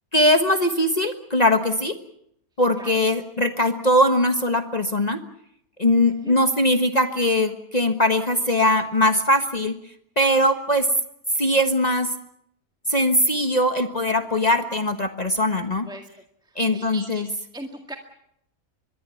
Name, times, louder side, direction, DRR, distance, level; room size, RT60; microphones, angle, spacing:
voice 1, 0.1-2.0 2.6-5.2 5.8-9.7 10.2-10.9 11.4-12.1 12.9-15.9 16.6-17.3, left 1 dB, 30° left, 7 dB, 1.4 m, -21 dB
voice 2, 16.4-17.3 17.5-18.0, right 1 dB, 5° right, 3 dB, 1.9 m, -39 dB
24.5 x 21.5 x 7.1 m, 0.73 s
omnidirectional pair, 1.5 m